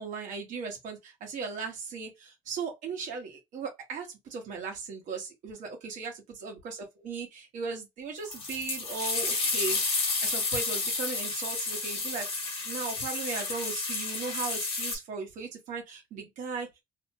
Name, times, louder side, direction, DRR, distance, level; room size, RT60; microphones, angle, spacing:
voice 1, 0.0-6.1 6.4-9.8 10.2-16.7, right 5 dB, 60° right, 1.1 m, -37 dB
sound 1, 8.3-15.0, left 3 dB, 40° left, 1.2 m, -31 dB
2.7 x 2.1 x 2.8 m
cardioid pair, 175°, 15 cm